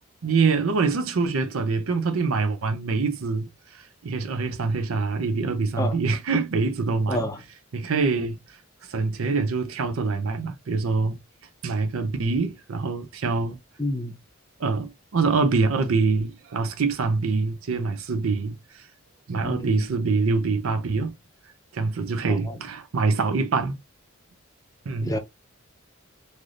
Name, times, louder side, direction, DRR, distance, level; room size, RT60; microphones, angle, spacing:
voice 1, 0.2-7.3 7.7-8.4 8.9-11.2 11.6-13.6 14.6-18.8 19.3-21.1 21.7-23.8 24.9-25.2, right 4 dB, 85° right, 0.5 m, -25 dB
voice 2, 13.8-14.2 19.4-19.8 22.3-22.4 25.0-25.2, left 1 dB, 15° left, 0.5 m, -28 dB
3.3 x 2.6 x 2.4 m
head